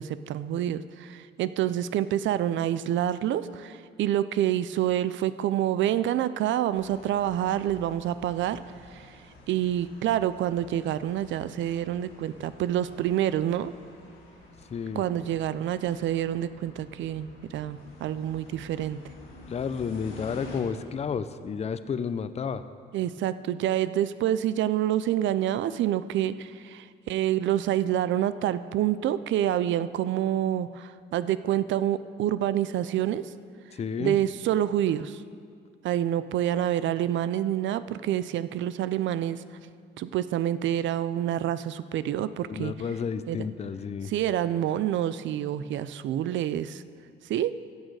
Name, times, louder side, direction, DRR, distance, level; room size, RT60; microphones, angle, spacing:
voice 1, 0.0-8.6 8.9-9.2 9.5-13.7 14.9-19.0 22.9-33.3 34.0-35.2 35.8-39.4 40.0-42.7 43.3-43.4 44.1-46.8 47.2-47.5, right 11 dB, 70° right, 14 dB, 0.4 m, -27 dB
sound 1, 6.7-20.6, left 2 dB, 85° left, 2.6 m, -49 dB
voice 2, 14.7-15.0 19.5-22.6 33.7-34.2 42.5-44.1, left 6 dB, 35° left, 12 dB, 0.5 m, -31 dB
15.5 x 6.5 x 4.8 m, 2.1 s
cardioid pair, 90°, 20 cm